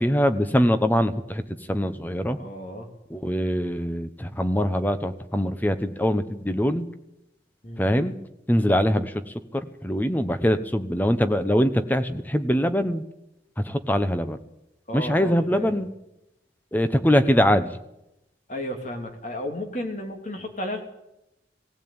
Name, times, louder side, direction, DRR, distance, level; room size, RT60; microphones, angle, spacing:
voice 1, 0.0-1.4 1.7-2.4 3.1-6.9 7.8-8.1 8.5-9.2 9.5-13.0 13.6-14.4 14.9-15.9 16.7-17.7, equal, 10° left, 10 dB, 1.0 m, -23 dB
voice 2, 2.4-2.9 7.6-7.8 14.9-15.8 18.5-20.8, left 1 dB, 40° left, 4 dB, 2.8 m, -33 dB
18.5 x 16.0 x 8.9 m, 0.88 s
head